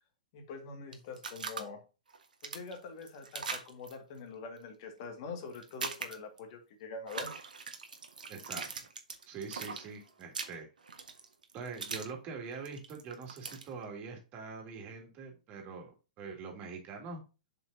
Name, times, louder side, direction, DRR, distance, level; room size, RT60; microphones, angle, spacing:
voice 1, 0.3-1.8 2.4-7.3, left 4 dB, 45° left, 5 dB, 2.1 m, -44 dB
sound 1, 0.9-1.6 2.1-3.9 5.5-6.4 7.1-12.1 12.4-13.7, right 4 dB, 85° right, 1.5 m, -41 dB
voice 2, 8.3-8.7 9.3-10.7 11.5-15.9 16.2-17.2, right 5 dB, 35° right, 2 dB, 2.9 m, -44 dB
7.2 x 5.8 x 2.8 m, 0.30 s
hypercardioid pair, 120°, 4 cm